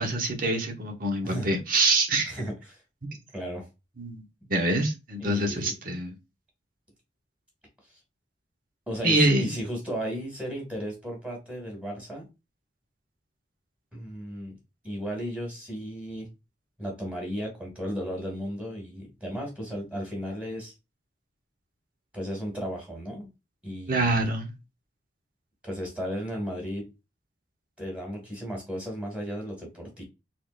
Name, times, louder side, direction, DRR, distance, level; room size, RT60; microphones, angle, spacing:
voice 1, 0.0-2.3 4.0-4.2 4.5-6.1 9.0-9.5 23.9-24.5, right 2 dB, 50° right, 1.1 m, -25 dB
voice 2, 2.3-2.8 3.3-3.7 5.2-5.7 8.9-12.3 13.9-14.6 14.8-16.3 16.8-20.7 22.1-23.3 23.6-24.3 25.6-26.9 27.8-30.0, equal, 5° right, 2.2 m, -35 dB
4.4 x 3.8 x 2.6 m
head